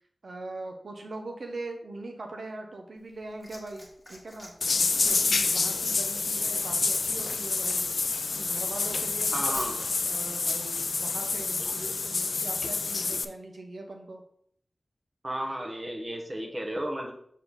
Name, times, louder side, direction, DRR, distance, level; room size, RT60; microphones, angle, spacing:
voice 1, 0.2-4.5 5.0-7.9 8.3-14.2, right 2 dB, 80° right, 3 dB, 0.8 m, -41 dB
Liquid, 3.0-9.9 11.0-11.1, left 1 dB, 10° left, 1.8 m, -48 dB
sound 1, 4.6-13.2, left 4 dB, 80° left, 0.3 m, -28 dB
voice 2, 9.3-9.8 15.2-17.1, right 1 dB, 30° right, 1 dB, 1.2 m, -33 dB
6.4 x 4.0 x 4.0 m, 0.66 s
wide cardioid pair, 85°, 0 cm